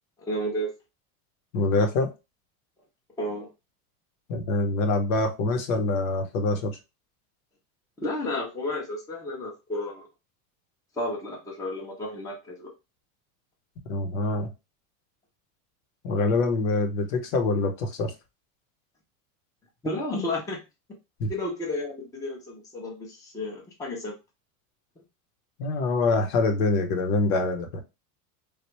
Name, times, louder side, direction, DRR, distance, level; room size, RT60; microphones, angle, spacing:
voice 1, 0.2-0.7 3.2-3.5 8.0-10.1 11.0-12.7 19.8-20.6 21.3-24.1, left 1 dB, 10° left, 0.6 m, -32 dB
voice 2, 1.5-2.1 4.3-6.8 13.9-14.5 16.0-18.1 21.2-21.3 25.6-27.8, left 3 dB, 65° left, 1.0 m, -25 dB
3.3 x 2.4 x 3.0 m
supercardioid pair, 145°, 44 cm